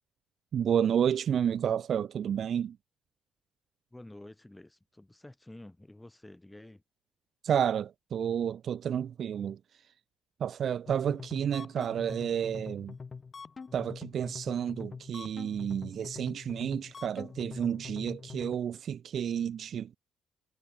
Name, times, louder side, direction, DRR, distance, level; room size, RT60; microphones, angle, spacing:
voice 1, 0.5-2.8 7.4-9.6 10.4-12.9 13.7-19.9, right 8 dB, 45° right, 0.4 m, -30 dB
voice 2, 3.9-6.8, left 1 dB, 5° left, 4.1 m, -50 dB
sound 1, 10.9-18.6, left 5 dB, 25° left, 2.3 m, -44 dB
cardioid pair, 165°, 0 cm